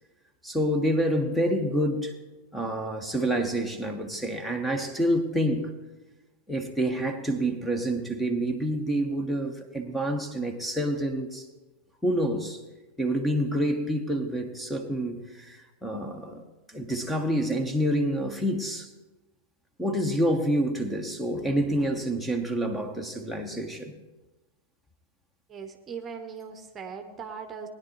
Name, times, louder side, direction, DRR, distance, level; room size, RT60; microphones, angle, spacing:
voice 1, 0.4-2.1 2.5-5.7 6.5-11.4 12.0-12.6 13.0-16.4 16.7-18.9 19.8-23.9, equal, 5° left, 6 dB, 1.2 m, -27 dB
voice 2, 25.5-27.7, right 6 dB, 25° right, 6 dB, 1.1 m, -39 dB
19.5 x 10.5 x 3.2 m, 1.1 s
figure-of-eight pair, 90°, 0 cm